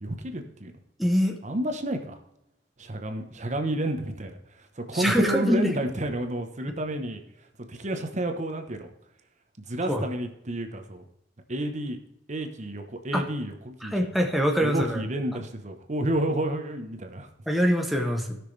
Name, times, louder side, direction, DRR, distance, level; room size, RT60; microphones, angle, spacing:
voice 1, 0.0-0.7 1.4-2.2 2.8-7.2 7.7-8.9 9.7-11.0 11.5-12.0 12.3-14.1 14.6-17.3, right 1 dB, 40° right, 6 dB, 1.0 m, -30 dB
voice 2, 1.0-1.4 4.9-5.7 9.9-10.0 13.1-13.2 13.8-15.0 17.5-18.4, equal, ahead, 2 dB, 0.9 m, -24 dB
16.5 x 6.1 x 3.3 m, 0.83 s
head